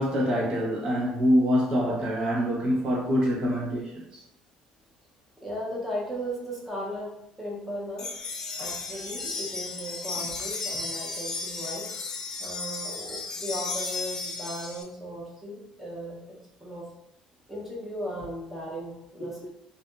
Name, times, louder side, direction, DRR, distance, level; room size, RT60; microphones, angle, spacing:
voice 1, 0.0-4.0 19.2-19.3, equal, 45° right, -4 dB, 1.0 m, -25 dB
voice 2, 5.4-8.3 8.5-16.2 16.6-16.9 17.5-19.5, equal, 10° right, -5 dB, 0.8 m, -37 dB
sound 1, 8.0-14.8, left 4 dB, 25° left, 0.4 m, -34 dB
2.5 x 2.5 x 2.2 m, 0.82 s
cardioid pair, 125°, 2 cm